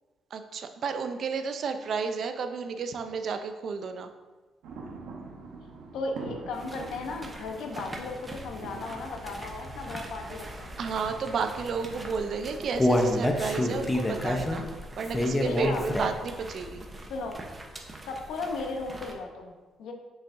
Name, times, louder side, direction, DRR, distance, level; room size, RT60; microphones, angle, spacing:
voice 1, 0.3-4.1 10.8-14.7 15.0-16.9, right 5 dB, 60° right, 7 dB, 0.6 m, -32 dB
sound 1, 4.6-11.6, right 3 dB, 85° right, 1.0 m, -45 dB
voice 2, 5.9-10.7 15.4-16.1 17.1-17.4 18.0-19.9, left 3 dB, 80° left, 3 dB, 0.9 m, -36 dB
sound 2, 6.5-19.1, right 2 dB, 25° right, 0.9 m, -44 dB
Human voice, 12.2-16.3 16.7-16.8 17.3-17.4, left 1 dB, 20° left, 0.8 m, -26 dB
6.9 x 5.6 x 2.7 m, 1.3 s
cardioid pair, 90°, 0 cm